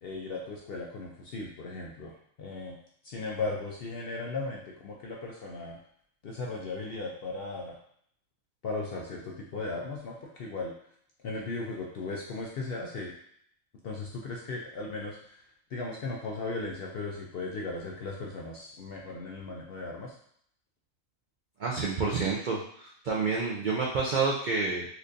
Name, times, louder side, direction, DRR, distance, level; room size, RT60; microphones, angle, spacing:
voice 1, 0.0-2.8 3.0-5.8 6.2-7.8 8.6-10.7 11.2-13.1 13.8-15.4 15.7-20.1, left 3 dB, 65° left, -2 dB, 0.6 m, -37 dB
voice 2, 21.6-24.9, right 4 dB, 75° right, -3 dB, 0.4 m, -29 dB
4.3 x 2.6 x 2.5 m, 0.66 s
omnidirectional pair, 1.4 m